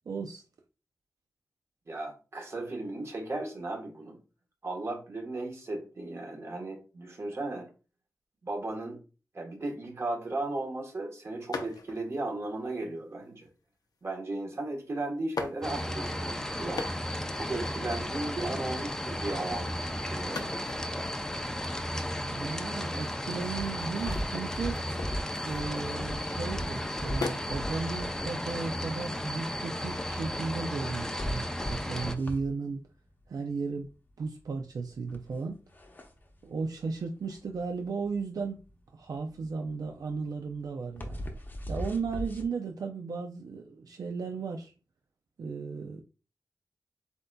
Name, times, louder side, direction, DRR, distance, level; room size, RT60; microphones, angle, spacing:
voice 1, 0.1-0.4 22.2-24.8 25.5-32.8 33.3-33.9 34.2-35.6 36.4-38.6 38.9-41.3 41.7-44.7 45.4-46.0, right 4 dB, 75° right, 0.4 m, -35 dB
voice 2, 1.9-4.2 4.6-7.7 8.4-9.0 9.3-13.5 14.0-16.9 17.3-20.5, right 2 dB, 45° right, 1.2 m, -36 dB
sound 1, 11.5-12.2 13.0-13.5 14.5-14.6 15.2-16.1 16.6-17.3 17.6-17.7 17.9-18.9 20.2-26.3 26.7-27.6 28.0-29.8, left 3 dB, 90° left, 0.7 m, -41 dB
sound 2, 15.6-32.1, left 1 dB, 10° left, 0.4 m, -34 dB
sound 3, 23.5-42.5, equal, 30° left, 0.8 m, -39 dB
7.8 x 2.6 x 2.2 m
wide cardioid pair, 125°, 6 cm